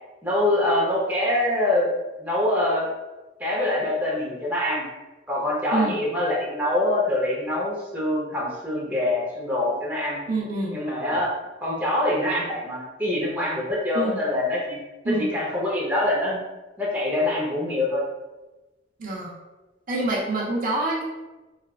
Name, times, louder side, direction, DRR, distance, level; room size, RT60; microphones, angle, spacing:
voice 1, 0.2-1.9 2.2-2.9 3.4-4.8 5.3-10.2 10.7-11.3 11.6-14.8 15.0-16.4 16.8-18.0, left 1 dB, 10° right, -6 dB, 0.7 m, -24 dB
voice 2, 10.3-10.8 11.1-11.2 13.9-14.2 15.0-15.3 19.0-19.3 19.9-21.0, right 2 dB, 50° right, -4 dB, 0.6 m, -26 dB
4.1 x 2.4 x 2.4 m, 1.1 s
head